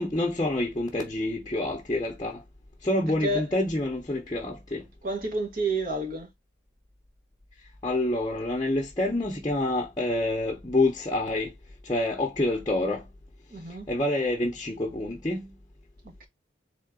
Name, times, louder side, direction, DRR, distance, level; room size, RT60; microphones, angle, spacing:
voice 1, 0.0-2.4 2.8-4.8 7.8-11.5 11.8-13.1 13.9-15.5, left 1 dB, 20° left, 0.8 m, -27 dB
voice 2, 5.0-6.3 13.5-13.9 16.0-16.3, right 2 dB, 50° right, 1.4 m, -29 dB
3.8 x 3.7 x 3.7 m
head